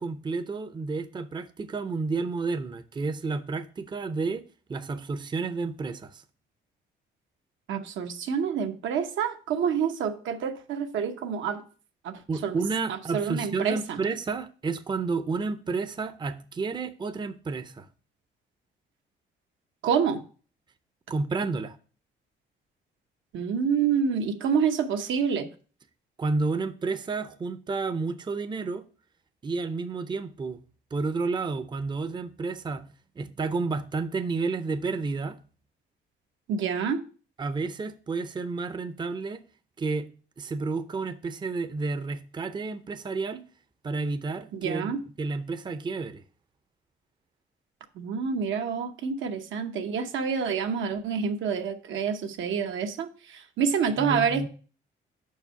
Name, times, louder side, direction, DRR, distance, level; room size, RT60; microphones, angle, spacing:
voice 1, 0.0-4.4 4.7-6.2 12.3-17.9 21.1-21.8 26.2-28.8 29.4-30.6 30.9-32.8 33.2-35.4 37.4-39.4 39.8-40.1 40.4-43.4 43.8-46.2 54.0-54.5, right 4 dB, 20° right, 0.5 m, -31 dB
voice 2, 7.7-11.6 12.0-12.6 12.9-14.0 19.8-20.2 23.3-25.5 36.5-37.0 44.5-45.0 48.0-54.5, right 6 dB, 80° right, 0.8 m, -28 dB
5.5 x 4.7 x 5.5 m
cardioid pair, 90°, 20 cm